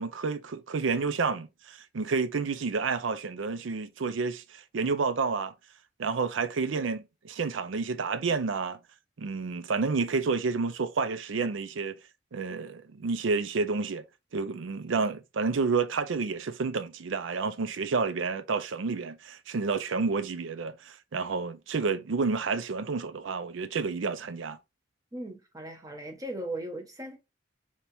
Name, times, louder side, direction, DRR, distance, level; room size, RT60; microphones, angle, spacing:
voice 1, 0.0-5.5 6.0-8.8 9.2-12.0 12.3-14.0 14.3-24.6, right 4 dB, 85° right, 0.5 m, -30 dB
voice 2, 25.1-27.2, right 1 dB, 20° right, 0.9 m, -38 dB
3.4 x 2.8 x 4.3 m
head